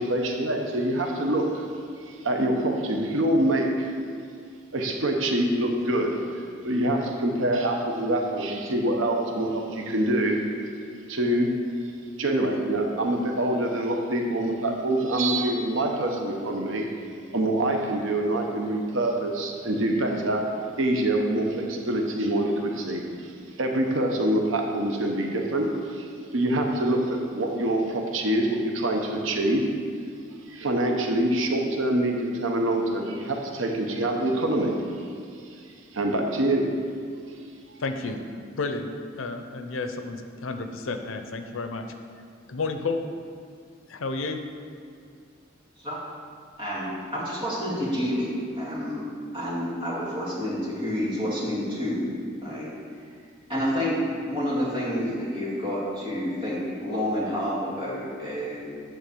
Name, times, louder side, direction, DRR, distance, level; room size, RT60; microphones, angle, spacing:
voice 1, 0.0-1.6 2.0-3.9 4.7-6.2 6.6-10.4 11.1-11.5 12.2-16.9 17.3-20.5 20.8-23.1 23.6-29.7 30.5-34.8 35.9-36.7, right 1 dB, 80° right, 2 dB, 0.9 m, -25 dB
voice 2, 37.8-38.2 38.6-38.9 39.2-41.9 42.5-43.0 43.9-44.4, left 3 dB, 90° left, 7 dB, 0.7 m, -31 dB
voice 3, 46.6-48.3 48.5-49.1 49.3-52.0 52.4-52.7 53.5-54.0 54.3-58.6, equal, 25° right, -7 dB, 2.1 m, -29 dB
9.7 x 3.9 x 6.9 m, 2.2 s
head